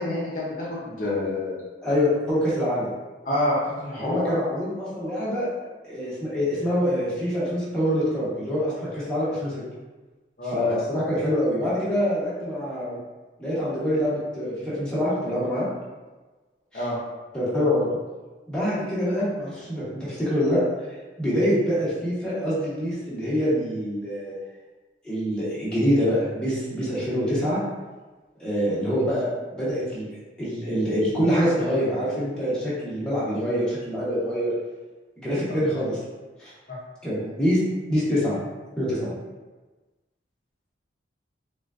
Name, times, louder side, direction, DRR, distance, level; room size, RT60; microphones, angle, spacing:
voice 1, 0.0-1.6 3.3-4.3 10.4-10.8 16.7-17.0 37.2-37.3, left 1 dB, 45° left, -7 dB, 0.6 m, -27 dB
voice 2, 1.8-2.9 4.0-5.5 5.8-9.5 10.5-13.0 13.4-15.7 16.7-16.8 17.3-17.9 18.5-20.6 21.2-24.3 25.0-27.6 28.4-30.1 30.4-34.5 35.2-36.0 36.4-36.5 37.0-37.6 37.9-39.1, equal, 5° left, -10 dB, 0.9 m, -25 dB
3.7 x 2.2 x 2.4 m, 1.2 s
head